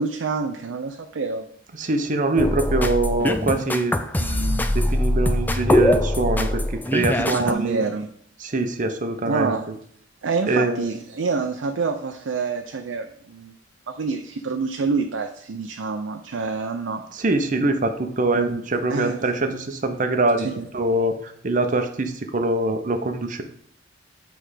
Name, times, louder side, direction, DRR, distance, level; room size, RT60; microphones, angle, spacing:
voice 1, 0.0-1.4 7.3-8.1 9.2-9.7 10.2-13.6 13.9-17.0 18.3-18.6 18.9-19.2 20.4-20.7, right 4 dB, 85° right, 5 dB, 0.5 m, -27 dB
voice 2, 1.8-7.8 8.4-9.5 10.5-10.9 17.1-20.5 20.7-23.4, right 2 dB, 45° right, 6 dB, 0.7 m, -24 dB
sound 1, 2.4-7.5, left 1 dB, 10° left, 0.4 m, -22 dB
7.6 x 3.4 x 4.9 m, 0.64 s
head